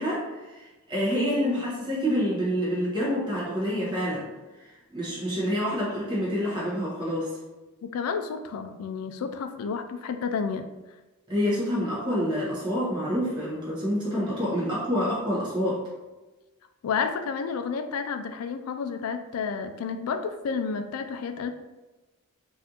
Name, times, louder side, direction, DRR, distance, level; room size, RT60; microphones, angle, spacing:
voice 1, 0.0-4.3 4.9-7.4 11.3-15.8, equal, 20° right, -8 dB, 1.0 m, -27 dB
voice 2, 7.8-10.7 16.8-21.5, left 5 dB, 75° left, 8 dB, 0.3 m, -31 dB
4.2 x 2.5 x 2.8 m, 1.1 s
head